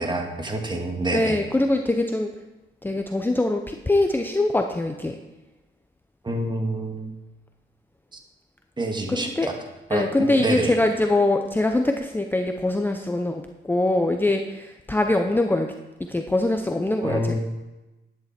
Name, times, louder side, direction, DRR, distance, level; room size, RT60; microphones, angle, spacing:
voice 1, 0.0-1.4 6.2-7.1 8.8-9.5 9.9-10.1 10.4-10.8 17.0-17.4, right 1 dB, 20° right, 2 dB, 2.1 m, -27 dB
voice 2, 1.1-2.3 2.8-5.2 9.1-9.5 9.9-15.7 16.0-17.4, left 2 dB, 10° left, 4 dB, 0.8 m, -23 dB
11.0 x 9.7 x 4.4 m, 1.1 s
cardioid pair, 90°, 20 cm